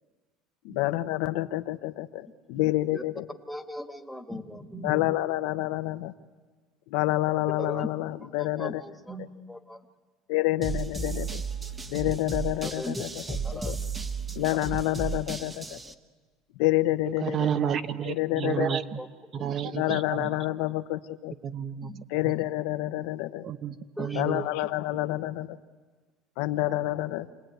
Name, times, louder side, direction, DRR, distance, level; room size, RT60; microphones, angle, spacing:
voice 1, 0.6-3.3 4.8-6.1 6.9-8.8 10.3-11.4 11.8-13.8 14.3-15.8 16.5-17.5 18.1-18.7 19.7-21.3 22.1-23.5 24.1-25.6 26.4-27.3, left 17 dB, 80° left, 11 dB, 1.0 m, -28 dB
voice 2, 3.5-5.0 7.6-7.9 8.4-9.8 12.6-13.0 13.4-13.8 19.0-19.1 19.3-19.4 21.8-22.0 24.0-24.5, left 1 dB, ahead, 5 dB, 1.6 m, -38 dB
sound 1, 10.6-15.9, right 4 dB, 15° right, 1.2 m, -34 dB
voice 3, 17.2-19.0 19.3-20.3 21.4-21.9 22.2-22.3 23.4-24.4, right 8 dB, 40° right, 11 dB, 1.1 m, -31 dB
27.0 x 20.5 x 9.2 m, 1.4 s
cardioid pair, 130°, 0 cm